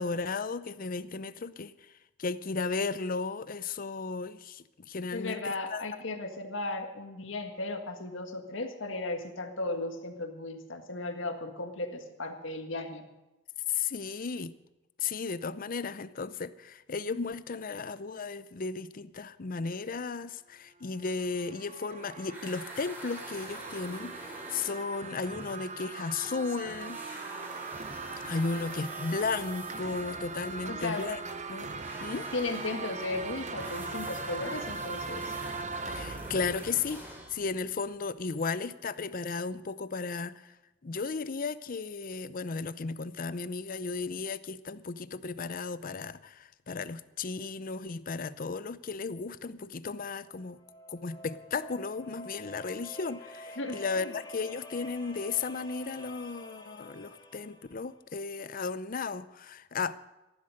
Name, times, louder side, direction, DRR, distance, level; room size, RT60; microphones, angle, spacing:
voice 1, 0.0-1.7 2.2-5.8 13.7-14.5 15.0-27.0 28.2-31.2 31.5-31.7 32.0-32.3 35.9-40.5 40.8-50.6 50.9-59.9, left 4 dB, 45° left, 0.6 m, -35 dB
voice 2, 5.1-13.1 30.7-31.1 32.3-35.4 53.6-54.1, left 2 dB, 80° left, 1.7 m, -36 dB
sound 1, 20.8-37.8, right 4 dB, 40° right, 0.8 m, -40 dB
sound 2, 22.3-26.4 26.6-37.4, equal, 10° right, 3.2 m, -47 dB
sound 3, 50.2-57.9, equal, 25° left, 2.6 m, -48 dB
14.5 x 11.5 x 6.5 m
head